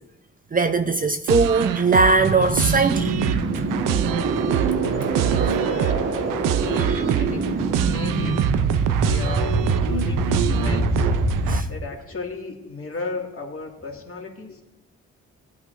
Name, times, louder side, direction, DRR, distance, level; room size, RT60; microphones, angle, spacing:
voice 1, 0.5-3.1 6.9-7.2 11.5-11.7, right 3 dB, 25° right, 0.6 m, -20 dB
sound 1, 1.3-11.6, right 10 dB, 75° right, 0.6 m, -25 dB
sound 2, 2.2-11.6, right 2 dB, 45° right, 1.4 m, -24 dB
voice 2, 5.3-6.1 6.5-7.6 7.9-8.5 8.9-11.1 11.7-14.6, left 3 dB, 45° left, 2.1 m, -35 dB
16.0 x 8.2 x 2.6 m
hypercardioid pair, 45°, 32 cm